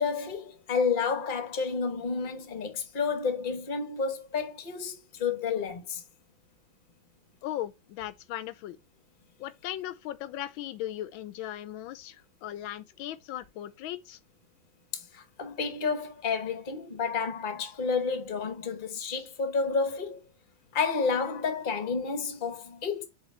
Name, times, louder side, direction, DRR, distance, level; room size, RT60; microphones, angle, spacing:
voice 1, 0.0-6.0 14.9-20.2 20.7-23.1, left 5 dB, 30° left, 1.1 m, -30 dB
voice 2, 7.4-8.8 9.4-14.2, left 13 dB, 90° left, 1.4 m, -38 dB
4.9 x 4.7 x 5.4 m
omnidirectional pair, 2.1 m